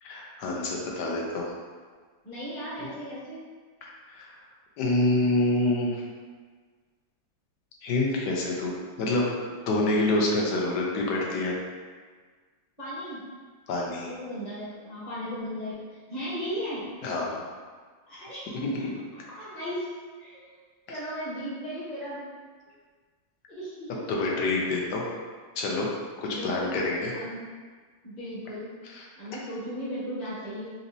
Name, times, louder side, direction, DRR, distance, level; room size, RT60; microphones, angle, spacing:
voice 1, 0.0-1.5 2.8-2.9 3.8-4.3 4.8-6.0 7.8-8.7 9.0-9.3 9.7-11.5 13.7-14.1 17.0-17.4 18.6-18.7 20.9-21.0 24.1-25.0 25.6-25.9 26.2-27.1 28.8-29.1, left 2 dB, 75° left, -2 dB, 1.2 m, -27 dB
voice 2, 2.2-3.4 12.8-13.2 14.0-15.8 16.1-16.8 18.1-18.6 19.3-19.9 20.2-20.6 20.9-22.2 23.5-24.1 26.3-26.8 27.1-27.4 28.0-28.7 29.2-30.7, equal, 25° left, -9 dB, 1.0 m, -36 dB
4.2 x 2.7 x 2.6 m, 1.5 s
omnidirectional pair, 1.9 m